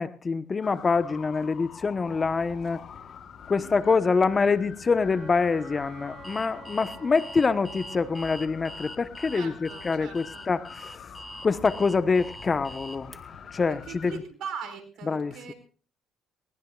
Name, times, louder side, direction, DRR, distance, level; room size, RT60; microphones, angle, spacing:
voice 1, 0.0-2.8 3.5-11.0 11.4-13.2 13.5-14.2 15.0-15.5, left 4 dB, 35° left, 13 dB, 1.0 m, -25 dB
sound 1, 0.6-14.2, left 7 dB, 55° left, 1.2 m, -46 dB
voice 2, 3.6-4.0 9.3-10.4 13.7-15.5, right 6 dB, 70° right, 7 dB, 4.5 m, -41 dB
Wind instrument woodwind instrument, 5.0-8.8, right 5 dB, 45° right, 4.4 m, -49 dB
Alarm, 6.2-13.2, equal, 5° left, 2.2 m, -43 dB
21.5 x 20.0 x 2.4 m, 0.40 s
supercardioid pair, 65°, 0 cm